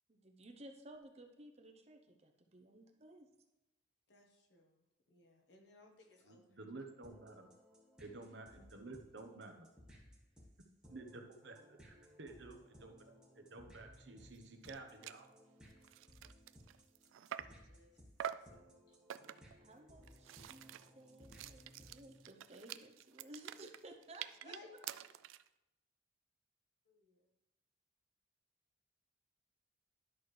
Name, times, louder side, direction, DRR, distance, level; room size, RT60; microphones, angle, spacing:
voice 1, 0.1-3.3 19.6-20.7 21.0-24.5, right 1 dB, 30° right, 5 dB, 0.7 m, -56 dB
voice 2, 4.1-6.6 17.4-17.9 18.2-19.0 24.4-25.1 26.8-27.3, left 2 dB, 60° left, 2 dB, 1.3 m, -62 dB
voice 3, 6.3-7.5 8.0-9.7 10.9-11.6 11.8-15.3, right 3 dB, 65° right, 4 dB, 0.9 m, -52 dB
sound 1, 7.0-22.3, equal, 5° right, 1.6 m, -61 dB
sound 2, 14.4-14.5 14.6-14.8 15.0-15.3 15.7-17.7 18.2-18.6 19.1-19.6 20.0-25.5, right 10 dB, 80° right, 0.3 m, -47 dB
10.5 x 6.2 x 3.2 m, 0.98 s
head